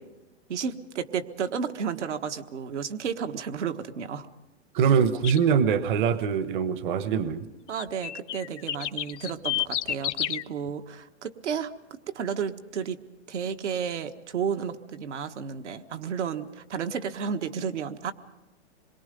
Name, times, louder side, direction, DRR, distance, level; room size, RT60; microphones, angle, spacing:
voice 1, 0.5-4.3 7.7-13.0 13.3-18.1, right 7 dB, 75° right, 7 dB, 1.5 m, -32 dB
voice 2, 4.7-7.4, right 7 dB, 45° right, 12 dB, 1.1 m, -23 dB
sound 1, 5.2-5.4 7.7-10.4, left 12 dB, 80° left, 0.7 m, -30 dB
26.5 x 22.5 x 5.3 m, 1.0 s
hypercardioid pair, 150°, 36 cm